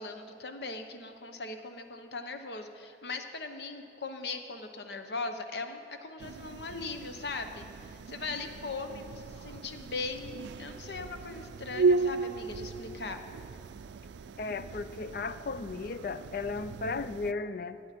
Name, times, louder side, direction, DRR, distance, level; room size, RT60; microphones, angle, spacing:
voice 1, 0.0-10.3 10.6-13.2, left 3 dB, 70° left, 7 dB, 0.9 m, -39 dB
sound 1, 6.2-17.3, right 4 dB, 90° right, 0.4 m, -35 dB
voice 2, 14.4-17.8, left 4 dB, 55° left, 13 dB, 0.4 m, -35 dB
15.0 x 8.6 x 5.9 m, 2.9 s
head